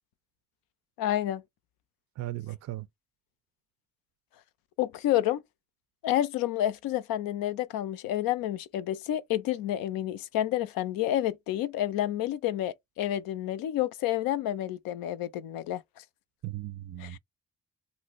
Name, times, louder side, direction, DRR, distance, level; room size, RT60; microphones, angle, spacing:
voice 1, 1.0-1.4 4.8-5.4 6.0-16.0 17.0-17.2, left 13 dB, 85° left, 0.5 m, -29 dB
voice 2, 2.2-2.9 16.4-17.2, right 15 dB, 50° right, 0.4 m, -37 dB
2.6 x 2.1 x 3.9 m
supercardioid pair, 55°, 34 cm